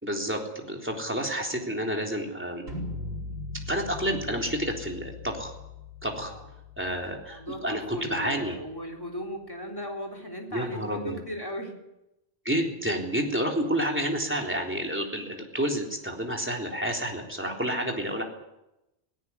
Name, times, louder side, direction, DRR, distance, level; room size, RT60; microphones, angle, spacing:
voice 1, 0.0-2.7 3.7-5.5 6.0-6.3 6.8-8.6 10.5-11.2 12.5-18.2, equal, 10° right, 1 dB, 3.6 m, -29 dB
sound 1, 2.7-8.7, left 3 dB, 75° right, 6.7 m, -40 dB
voice 2, 7.3-11.7 17.3-17.7, equal, 20° left, 1 dB, 3.8 m, -37 dB
18.0 x 17.0 x 9.7 m, 0.90 s
omnidirectional pair, 1.1 m